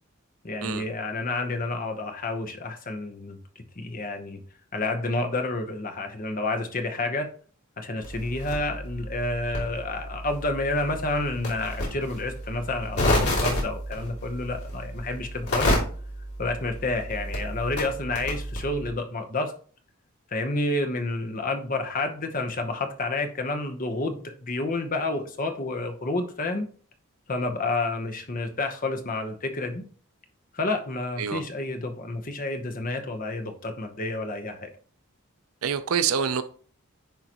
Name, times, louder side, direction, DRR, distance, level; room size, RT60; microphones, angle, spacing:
voice 1, 0.4-4.4 4.7-7.3 7.8-15.8 16.4-19.5 20.3-26.7 27.3-29.8 30.5-34.7, left 2 dB, 40° left, 5 dB, 0.9 m, -29 dB
sound 1, 8.0-18.9, left 1 dB, 90° left, 2.9 m, -30 dB
voice 2, 35.6-36.4, right 7 dB, 75° right, 12 dB, 0.5 m, -26 dB
10.0 x 3.8 x 3.0 m, 0.44 s
head